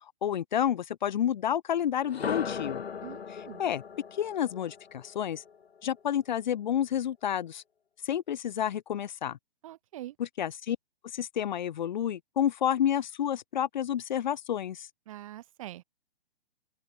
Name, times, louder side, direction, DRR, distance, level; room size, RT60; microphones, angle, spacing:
voice 1, 0.2-2.8 3.3-3.8 4.1-5.4 5.8-7.6 8.0-9.4 10.2-10.8 11.1-14.9, left 10 dB, 45° left, 0.9 m, -30 dB
sound 1, 2.0-6.0, left 6 dB, 80° left, 0.6 m, -38 dB
voice 2, 3.0-3.6 9.6-10.1 15.1-15.8, right 14 dB, 35° right, 0.9 m, -44 dB
open air
figure-of-eight pair, 125°, 31 cm